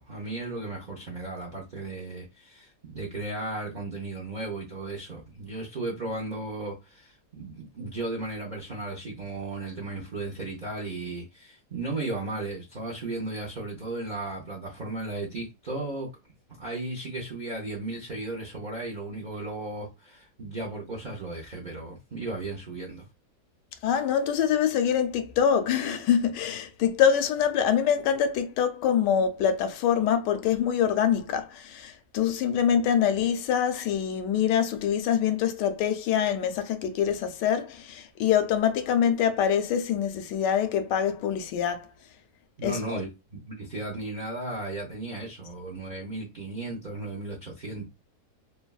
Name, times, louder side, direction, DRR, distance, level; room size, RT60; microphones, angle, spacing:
voice 1, 0.0-16.1 16.6-23.1 42.6-47.9, right 2 dB, 65° right, 0.4 m, -35 dB
voice 2, 23.8-41.9 42.6-42.9, left 8 dB, 85° left, 1.2 m, -25 dB
3.3 x 2.2 x 2.2 m
omnidirectional pair, 1.8 m